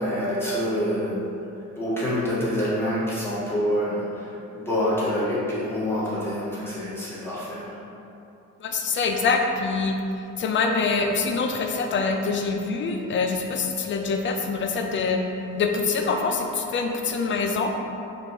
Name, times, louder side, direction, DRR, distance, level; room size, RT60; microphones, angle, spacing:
voice 1, 0.0-1.4 1.7-4.3 4.5-7.8, equal, 5° left, -10 dB, 1.5 m, -26 dB
voice 2, 8.6-10.0 10.4-15.2 15.6-17.7, left 4 dB, 30° left, 3 dB, 0.4 m, -25 dB
4.2 x 2.6 x 2.7 m, 2.8 s
figure-of-eight pair, 45°, 46 cm